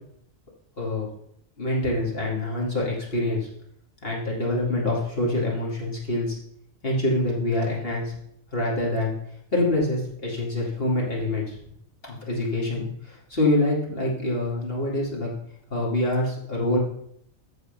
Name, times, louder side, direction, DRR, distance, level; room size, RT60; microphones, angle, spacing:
voice 1, 0.8-1.1 1.6-3.5 4.0-6.4 6.8-8.2 8.5-9.1 9.5-11.6 12.0-15.3 15.7-16.8, left 1 dB, 45° left, -3 dB, 2.7 m, -25 dB
14.0 x 4.8 x 5.3 m, 0.72 s
omnidirectional pair, 1.4 m